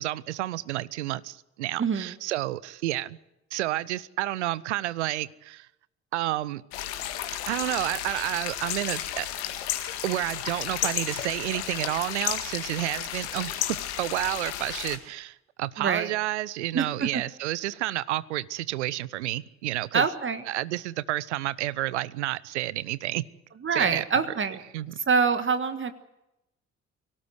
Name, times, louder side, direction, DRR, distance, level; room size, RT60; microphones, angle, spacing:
voice 1, 0.0-3.2 3.5-5.7 6.1-6.6 7.5-9.3 10.0-20.0 20.5-23.2 23.7-24.0 24.7-24.9, right 16 dB, 75° right, 0.7 m, -30 dB
voice 2, 1.8-2.1 15.8-16.1 16.7-17.2 19.9-20.4 23.6-24.6 25.0-25.9, right 5 dB, 35° right, 1.6 m, -25 dB
sound 1, 6.7-15.0, left 12 dB, 70° left, 2.0 m, -33 dB
24.5 x 18.0 x 8.0 m
figure-of-eight pair, 45°, 35 cm